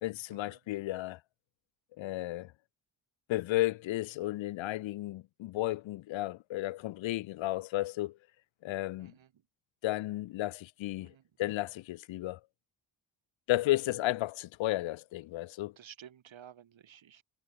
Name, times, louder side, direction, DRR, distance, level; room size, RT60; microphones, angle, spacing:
voice 1, 0.0-1.2 2.0-2.5 3.3-8.2 8.6-9.1 9.8-11.1 11.4-12.4 13.5-15.8, left 16 dB, 80° left, 0.6 m, -33 dB
voice 2, 15.8-17.2, right 9 dB, 80° right, 5.7 m, -53 dB
cardioid pair, 65°, 46 cm